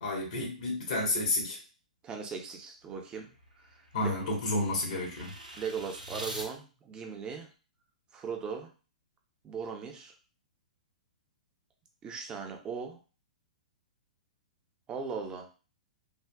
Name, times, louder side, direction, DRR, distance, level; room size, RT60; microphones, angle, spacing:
voice 1, 0.0-1.6 3.9-5.3, left 2 dB, 60° left, -1 dB, 1.3 m, -30 dB
voice 2, 2.0-3.3 5.5-7.5 8.1-8.7 9.4-10.1 12.0-13.0 14.9-15.5, right 5 dB, 20° right, 3 dB, 0.7 m, -38 dB
sound 1, 2.9-6.5, right 1 dB, 90° right, 0.8 m, -45 dB
3.5 x 2.5 x 2.3 m, 0.34 s
figure-of-eight pair, 110°, 4 cm